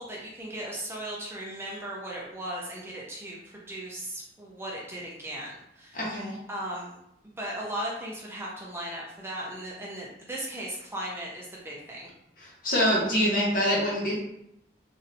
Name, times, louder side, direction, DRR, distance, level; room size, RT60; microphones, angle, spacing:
voice 1, 0.0-6.2 6.5-7.0 7.2-12.1, right 1 dB, 15° right, -4 dB, 0.5 m, -37 dB
voice 2, 5.9-6.4 12.6-14.2, equal, 50° left, -5 dB, 1.1 m, -25 dB
3.1 x 2.6 x 2.6 m, 0.79 s
head